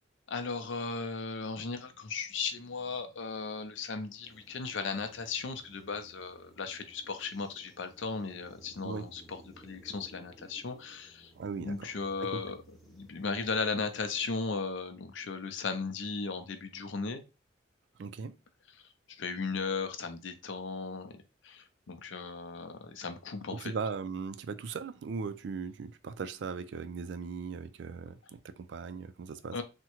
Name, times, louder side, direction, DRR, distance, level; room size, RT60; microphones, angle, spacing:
voice 1, 0.3-11.3 11.6-12.6 12.9-17.2 19.2-23.7 29.5-29.6, left 4 dB, 70° left, 0.5 m, -36 dB
sound 1, 4.2-14.4, right 1 dB, ahead, 0.5 m, -59 dB
voice 2, 11.4-11.9 12.2-12.4 18.0-18.4 23.5-29.6, right 5 dB, 65° right, 0.3 m, -38 dB
3.6 x 2.1 x 2.9 m
head